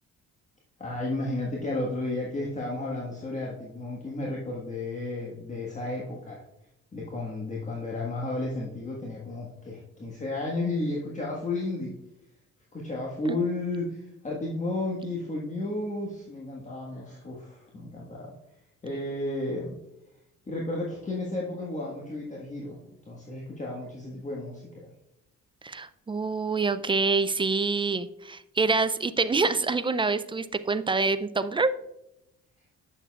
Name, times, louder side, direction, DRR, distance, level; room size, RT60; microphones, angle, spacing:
voice 1, 0.8-6.4 6.9-11.9 12.7-18.3 18.8-19.7 20.5-24.9, left 2 dB, 25° left, -3 dB, 1.4 m, -33 dB
voice 2, 25.6-31.7, right 4 dB, 15° right, 13 dB, 0.3 m, -26 dB
8.4 x 7.0 x 2.3 m, 0.85 s
cardioid pair, 90°, 30 cm